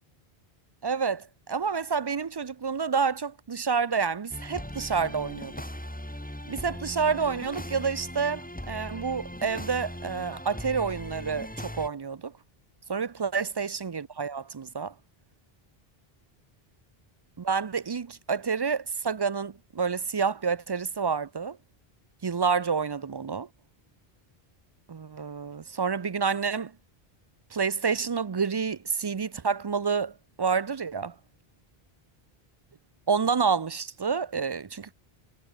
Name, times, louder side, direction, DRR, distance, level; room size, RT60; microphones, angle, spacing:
voice 1, 0.8-5.6 6.5-12.3 12.9-14.9 17.4-21.6 22.2-23.5 24.9-26.7 27.5-31.1 33.1-34.9, right 5 dB, 40° right, 0.3 m, -29 dB
sound 1, 4.3-11.9, equal, 10° left, 2.5 m, -39 dB
omnidirectional pair, 1.0 m